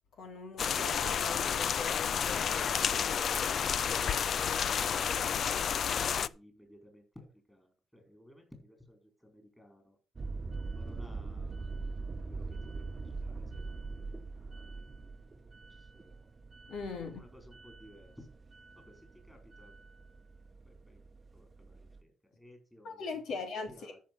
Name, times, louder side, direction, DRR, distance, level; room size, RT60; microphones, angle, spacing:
voice 1, 0.2-3.2 16.7-17.2 22.8-23.7, left 4 dB, 70° left, 2.9 m, -41 dB
sound 1, 0.6-6.3, left 7 dB, 50° left, 0.4 m, -30 dB
voice 2, 3.5-10.0 10.7-11.8 12.2-14.1 14.3-15.1 15.6-16.3 17.0-18.4 18.8-19.8 20.7-21.0 21.3-24.0, left 1 dB, 10° left, 4.4 m, -58 dB
sound 2, 10.2-22.0, right 3 dB, 25° right, 1.0 m, -43 dB
13.5 x 5.6 x 5.4 m
cardioid pair, 135°, 0 cm